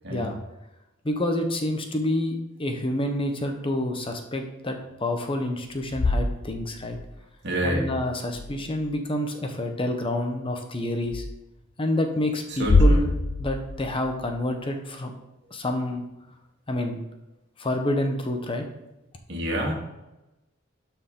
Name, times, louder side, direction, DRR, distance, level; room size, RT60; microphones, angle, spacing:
voice 1, 1.0-7.0 7.6-11.2 11.8-13.1 13.4-15.1 15.5-16.0 16.7-17.0 17.6-18.6, left 1 dB, 25° left, 4 dB, 0.9 m, -28 dB
sound 1, 5.7-7.1 8.2-8.9 11.1-11.2 12.5-14.5, left 2 dB, 80° left, 0.7 m, -25 dB
voice 2, 7.4-7.8 12.6-13.0 19.3-19.7, right 1 dB, 60° right, -1 dB, 2.2 m, -27 dB
12.5 x 4.5 x 3.8 m, 0.98 s
head